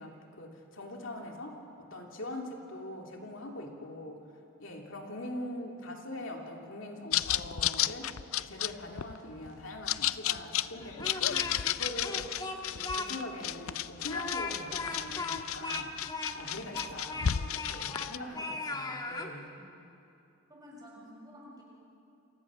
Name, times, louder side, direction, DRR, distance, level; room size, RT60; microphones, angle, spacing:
voice 1, 0.0-4.3 4.6-12.3 12.6-19.6, left 1 dB, 65° left, 1 dB, 2.8 m, -43 dB
sound 1, 7.1-18.2, left 11 dB, 85° left, 0.6 m, -33 dB
Speech, 10.8-11.7 12.0-13.1 13.4-13.5 14.0-18.1 18.3-19.3, left 3 dB, 20° left, 1.8 m, -37 dB
voice 2, 20.5-21.6, equal, 20° right, -3 dB, 6.5 m, -51 dB
28.5 x 28.0 x 6.3 m, 2.6 s
head